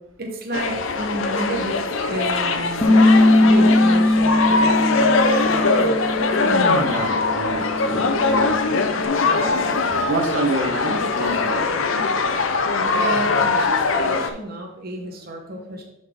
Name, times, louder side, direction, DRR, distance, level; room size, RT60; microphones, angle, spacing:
voice 1, 0.2-5.3 12.9-15.8, right 1 dB, 50° right, 1 dB, 1.1 m, -31 dB
sound 1, 0.5-14.3, left 3 dB, 75° left, 0.6 m, -21 dB
Bass guitar, 2.8-9.0, left 1 dB, 15° left, 0.7 m, -20 dB
voice 2, 6.4-8.6 9.3-9.5 9.9-12.0, right 2 dB, 75° right, 3 dB, 1.1 m, -27 dB
10.0 x 4.1 x 3.7 m, 0.86 s
head